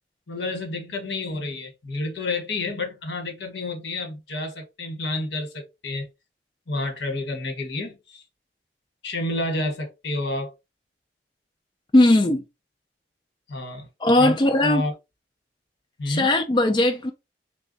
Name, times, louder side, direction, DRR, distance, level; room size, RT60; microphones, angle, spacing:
voice 1, 0.3-6.1 6.7-8.2 9.0-10.5 13.5-13.9 14.1-14.9 16.0-16.3, left 2 dB, 85° left, 1.2 m, -29 dB
voice 2, 11.9-12.4 14.0-14.8 16.1-17.1, left 1 dB, 25° left, 0.4 m, -18 dB
3.3 x 2.3 x 3.9 m
head